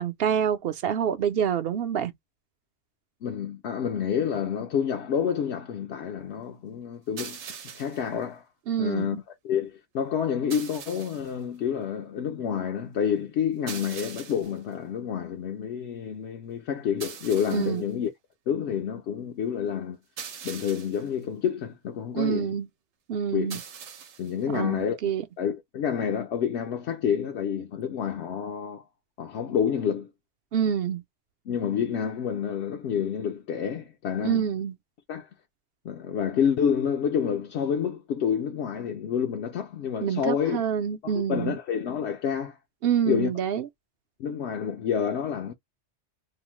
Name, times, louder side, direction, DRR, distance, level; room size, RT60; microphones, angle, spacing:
voice 1, 0.0-2.1 8.7-9.2 17.5-17.8 22.1-22.7 23.1-23.6 24.5-25.2 30.5-31.0 34.2-34.8 40.0-41.5 42.8-43.7, right 8 dB, 65° right, 0.7 m, -27 dB
voice 2, 3.2-7.4 7.7-8.4 8.8-9.2 9.4-18.1 18.5-20.0 20.4-22.5 23.3-23.6 24.2-25.0 25.4-28.8 29.2-30.1 31.5-34.5 35.1-35.3 35.8-40.6 41.0-42.6 43.1-43.3 44.2-45.5, left 8 dB, 80° left, 0.8 m, -28 dB
sound 1, 7.2-8.1 10.5-11.3 13.7-14.6 17.0-17.8 20.2-21.1 23.5-24.3, right 7 dB, 90° right, 1.0 m, -41 dB
2.9 x 2.0 x 3.0 m
omnidirectional pair, 1.1 m